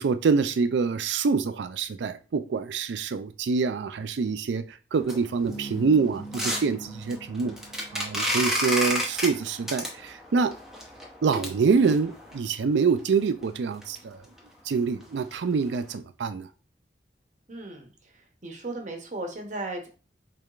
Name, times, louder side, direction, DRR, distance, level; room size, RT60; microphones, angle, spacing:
voice 1, 0.0-4.6 4.9-7.6 7.9-10.5 11.2-14.2 14.7-16.5, right 5 dB, 85° right, 11 dB, 0.4 m, -25 dB
sound 1, 5.0-12.4 13.0-13.1 13.4-13.5 13.8-14.0 14.3-14.4 14.8-15.0 15.3-15.4 15.9-16.0, equal, 5° right, 0.7 m, -31 dB
Bass guitar, 5.5-9.1, right 2 dB, 40° left, 1.4 m, -43 dB
voice 2, 17.5-19.9, right 2 dB, 45° right, 3 dB, 0.9 m, -36 dB
4.7 x 3.3 x 2.4 m, 0.35 s
head